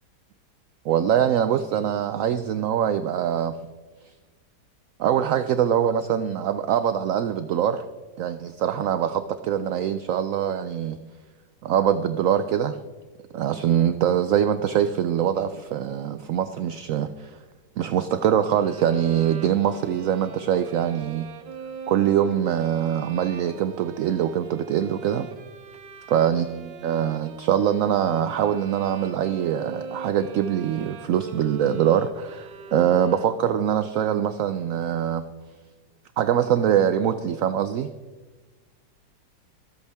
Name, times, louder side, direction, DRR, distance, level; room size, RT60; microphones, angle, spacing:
voice 1, 0.8-3.5 5.0-7.8 8.2-11.0 11.6-12.8 13.3-17.3 17.8-21.3 21.9-25.3 26.1-35.2 36.2-37.9, right 9 dB, 70° right, 11 dB, 0.8 m, -23 dB
sound 1, 18.5-33.7, right 4 dB, 85° right, 1.6 m, -42 dB
25.0 x 8.3 x 3.5 m, 1.3 s
omnidirectional pair, 1.8 m